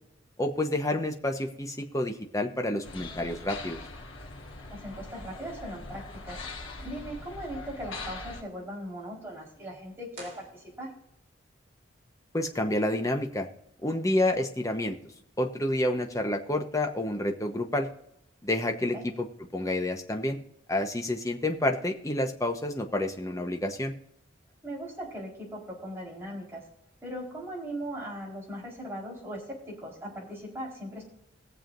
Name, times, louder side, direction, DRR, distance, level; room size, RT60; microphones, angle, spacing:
voice 1, 0.4-3.8 12.3-13.5 13.8-15.0 15.4-17.9 18.4-19.3 19.5-20.4 20.7-23.9, left 1 dB, 15° left, 4 dB, 1.0 m, -29 dB
sound 1, 2.8-8.4, left 3 dB, 80° left, 1.8 m, -42 dB
voice 2, 4.7-6.4 6.8-10.9 18.9-19.1 24.6-26.6 27.0-31.0, equal, 10° right, -5 dB, 4.3 m, -39 dB
sound 2, 10.1-11.3, right 2 dB, 40° right, 4.2 m, -49 dB
21.5 x 7.3 x 2.6 m, 0.76 s
head